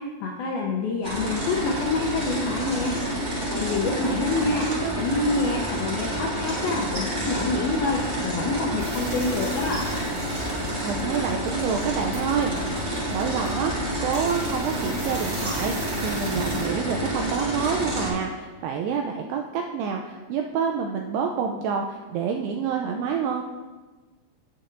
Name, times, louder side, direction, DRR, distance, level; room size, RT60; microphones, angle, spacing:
voice 1, 0.0-2.9 3.5-4.7 4.9-9.9, left 3 dB, 80° left, 0 dB, 2.1 m, -27 dB
sound 1, 1.0-18.1, equal, 30° right, 2.8 m, -29 dB
voice 2, 3.3-3.7 4.0-5.1 10.8-12.6 13.1-23.4, right 6 dB, 85° right, 3 dB, 2.3 m, -28 dB
sound 2, 8.8-16.7, right 2 dB, 45° right, 2.1 m, -39 dB
17.0 x 7.7 x 2.5 m, 1.3 s
omnidirectional pair, 5.2 m